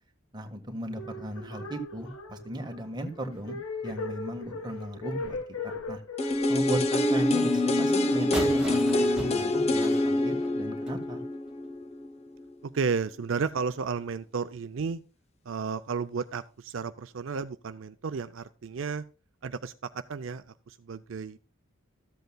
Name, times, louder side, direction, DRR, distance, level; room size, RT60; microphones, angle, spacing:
voice 1, 0.3-5.4 5.6-6.0 6.5-11.2, right 1 dB, 20° right, 4 dB, 1.4 m, -36 dB
sound 1, 0.9-8.0, left 3 dB, 85° left, 1.2 m, -39 dB
sound 2, 6.2-12.1 12.4-12.5, left 1 dB, 30° left, 0.8 m, -26 dB
sound 3, 8.3-11.0, equal, 5° right, 1.8 m, -36 dB
voice 2, 12.6-15.0 15.5-19.0 19.4-21.4, right 5 dB, 65° right, 11 dB, 0.4 m, -33 dB
14.0 x 7.9 x 2.2 m, 0.36 s
head